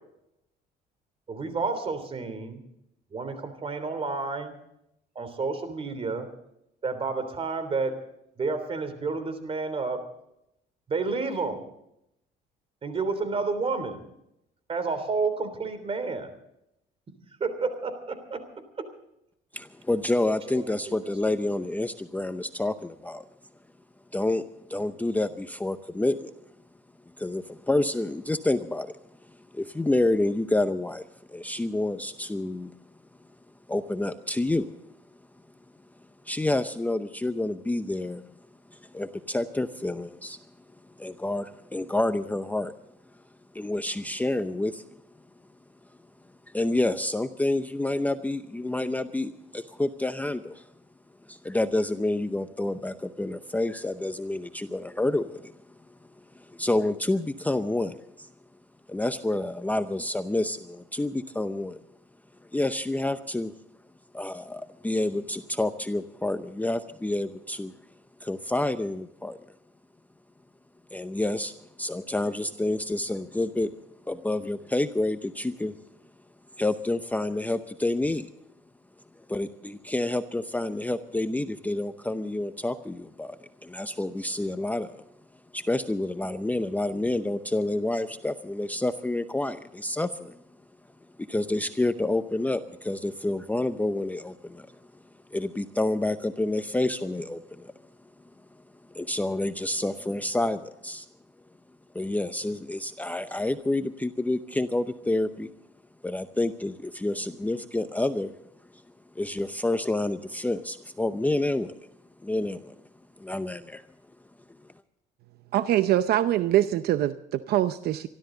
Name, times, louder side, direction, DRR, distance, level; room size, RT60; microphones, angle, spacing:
voice 1, 1.3-2.6 3.1-4.5 5.1-6.3 6.8-8.0 8.4-10.0 10.9-11.6 12.8-14.0 14.7-16.3 17.4-18.4 18.8-18.9 20.3-21.3, right 4 dB, 35° right, 11 dB, 3.2 m, -30 dB
voice 2, 19.5-23.2 24.1-26.3 27.2-28.9 29.5-32.7 33.7-34.7 36.2-38.2 38.7-40.4 41.0-42.7 43.5-44.8 46.5-50.7 51.3-55.5 56.3-58.3 58.9-61.8 62.5-63.5 64.1-67.7 68.2-69.4 70.9-71.5 71.8-73.7 74.1-75.8 76.6-78.3 79.3-85.1 85.5-90.4 91.2-94.7 95.3-97.7 98.9-101.1 101.9-105.5 106.0-108.4 109.2-111.9 112.2-112.7 113.2-113.8, left 2 dB, 10° left, 10 dB, 0.7 m, -28 dB
voice 3, 115.5-118.1, right 13 dB, 70° right, 13 dB, 0.6 m, -24 dB
25.5 x 13.0 x 3.9 m, 0.80 s
cardioid pair, 110°, 17 cm